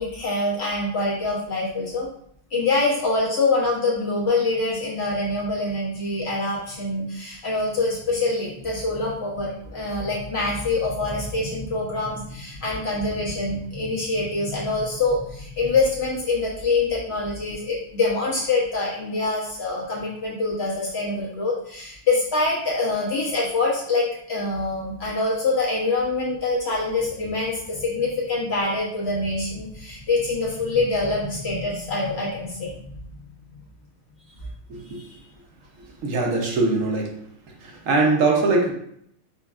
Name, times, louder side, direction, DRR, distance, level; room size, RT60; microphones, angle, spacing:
voice 1, 0.0-2.1 2.5-33.0 34.3-34.4 34.9-35.2, left 3 dB, 55° left, -6 dB, 1.2 m, -25 dB
voice 2, 34.7-35.0 35.8-37.2 37.6-38.7, right 3 dB, 75° right, 0 dB, 1.2 m, -22 dB
5.0 x 2.5 x 2.4 m, 0.69 s
omnidirectional pair, 1.4 m